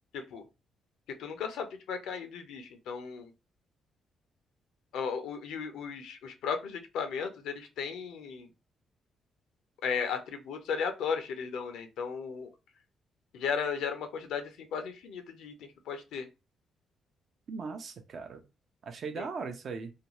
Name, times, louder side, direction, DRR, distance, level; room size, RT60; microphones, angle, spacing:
voice 1, 0.1-0.4 1.2-3.3 4.9-8.5 9.8-12.5 13.3-16.3 19.2-19.3, left 6 dB, 80° left, 7 dB, 0.5 m, -35 dB
voice 2, 17.5-18.4 18.8-19.9, right 5 dB, 60° right, 6 dB, 0.6 m, -38 dB
2.5 x 2.2 x 3.0 m, 0.27 s
supercardioid pair, 60°, 0 cm